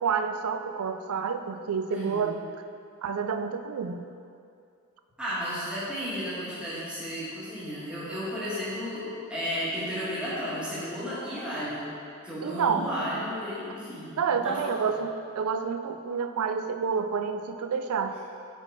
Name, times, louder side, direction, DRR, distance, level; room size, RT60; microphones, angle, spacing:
voice 1, 0.0-2.4 3.0-4.0 12.4-12.9 14.2-18.2, right 6 dB, 80° right, 8 dB, 0.4 m, -29 dB
voice 2, 1.9-2.3 5.2-11.8 12.2-14.9, equal, 5° right, -10 dB, 1.6 m, -33 dB
7.1 x 3.8 x 4.8 m, 2.4 s
head